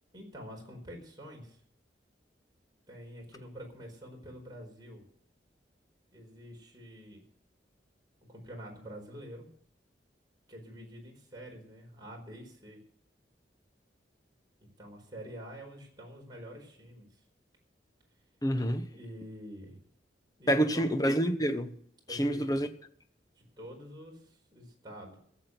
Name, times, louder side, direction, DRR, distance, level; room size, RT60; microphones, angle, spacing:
voice 1, 0.1-1.6 2.9-5.1 6.1-7.2 8.3-9.5 10.5-12.8 14.6-17.2 18.9-19.8 20.4-20.9 22.1-22.6 23.3-25.2, equal, 25° right, 4.7 m, -47 dB
voice 2, 18.4-18.9 20.5-21.8 22.1-22.7, right 1 dB, 20° left, 1.1 m, -27 dB
16.5 x 7.5 x 8.1 m
head